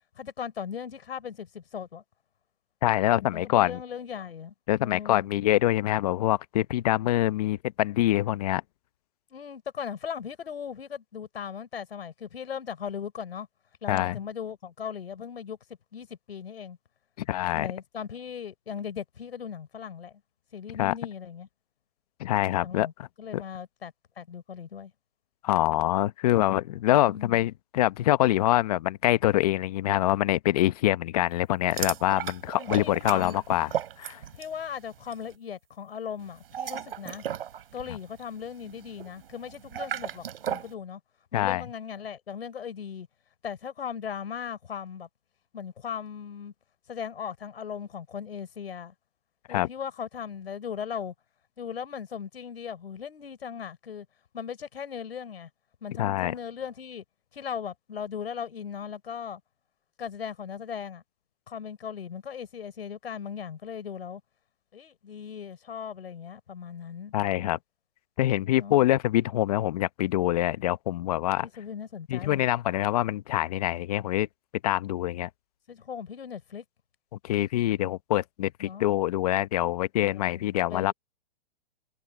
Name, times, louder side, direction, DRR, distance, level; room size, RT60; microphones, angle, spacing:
voice 1, 0.2-2.0 3.3-4.5 4.8-5.3 9.3-13.5 13.8-15.6 15.9-16.8 17.5-20.2 20.5-21.5 22.6-22.9 23.2-24.9 27.1-27.4 32.6-33.4 34.3-37.3 37.7-41.0 41.3-43.1 43.4-45.1 45.5-46.5 46.9-48.9 49.5-51.1 51.6-54.1 54.3-55.5 55.8-57.0 57.3-59.4 60.0-61.0 61.5-64.2 64.7-67.1 68.6-68.8 71.4-72.4 75.7-76.6 78.6-78.9 80.0-80.4 80.7-80.9, left 7 dB, 80° left, 5.3 m, -38 dB
voice 2, 2.8-3.8 4.7-8.6 13.9-14.2 17.2-17.7 20.8-21.0 22.2-23.1 23.3-23.4 25.4-33.7 34.0-34.2 41.3-41.6 49.5-49.7 56.0-56.4 67.1-67.6 68.2-71.5 72.1-74.3 74.6-75.3 77.2-80.9, left 14 dB, 40° left, 1.0 m, -25 dB
sound 1, 31.7-34.6 34.9-35.2 36.4-40.7, right 9 dB, 65° right, 5.4 m, -36 dB
hypercardioid pair, 160°, 30 cm